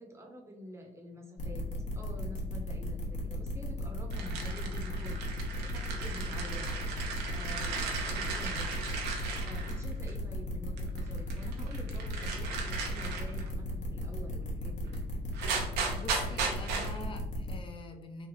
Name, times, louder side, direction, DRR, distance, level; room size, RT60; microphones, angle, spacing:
voice 1, 0.0-1.6 1.9-5.3 5.6-6.7 7.3-8.8 9.4-14.9, equal, 15° right, 1 dB, 0.9 m, -47 dB
sound 1, 1.4-17.5, equal, 45° left, 1.1 m, -36 dB
sound 2, 4.1-10.1 10.8-13.5 14.9-15.0 15.3-17.0, right 5 dB, 85° right, 0.8 m, -37 dB
voice 2, 15.9-18.3, left 2 dB, 30° left, 5 dB, 0.6 m, -45 dB
3.4 x 2.7 x 3.7 m, 0.98 s
cardioid pair, 110°, 17 cm